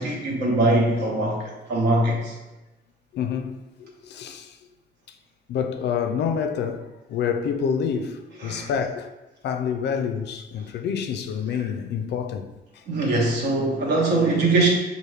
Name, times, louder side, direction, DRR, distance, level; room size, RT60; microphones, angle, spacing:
voice 1, 0.0-2.3 8.4-8.7 12.9-14.7, right 2 dB, 65° right, 1.2 m, -22 dB
voice 2, 3.1-4.6 5.5-9.1 9.4-12.5 12.7-12.8, left 7 dB, 65° left, 0.4 m, -28 dB
6.2 x 2.5 x 3.3 m
cardioid pair, 155°, 19 cm